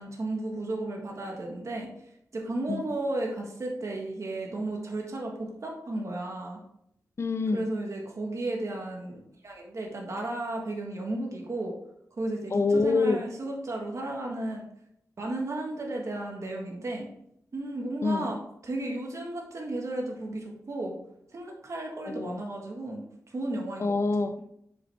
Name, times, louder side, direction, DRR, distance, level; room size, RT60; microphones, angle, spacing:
voice 1, 0.0-1.9 2.3-6.6 7.5-11.7 12.2-14.7 15.2-17.1 17.5-20.9 21.3-23.0 23.3-23.9, right 2 dB, 55° right, -1 dB, 1.6 m, -34 dB
voice 2, 7.2-7.7 12.5-13.2 18.0-18.3 22.0-22.4 23.8-24.4, left 3 dB, 45° left, 9 dB, 0.5 m, -26 dB
6.9 x 5.4 x 3.5 m, 0.74 s
wide cardioid pair, 70°, 6 cm